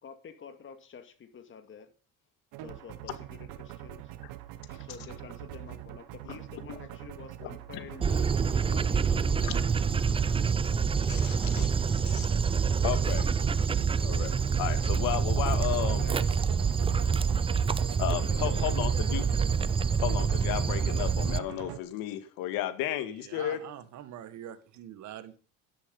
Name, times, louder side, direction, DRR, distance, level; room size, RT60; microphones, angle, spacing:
voice 1, 0.0-1.9 2.6-4.1 4.8-9.5 16.0-16.2 16.7-16.9 18.2-19.4, left 7 dB, 35° left, 2.2 m, -48 dB
sound 1, 2.5-21.8, right 13 dB, 85° right, 1.6 m, -42 dB
Dog, 8.0-21.4, right 6 dB, 15° right, 0.5 m, -27 dB
voice 2, 11.1-11.7 12.0-12.3 12.8-13.3 14.0-16.0 18.0-19.2 20.0-23.6, left 12 dB, 85° left, 2.0 m, -33 dB
voice 3, 23.1-25.4, right 11 dB, 55° right, 1.8 m, -44 dB
12.0 x 11.0 x 5.4 m
cardioid pair, 130°, 33 cm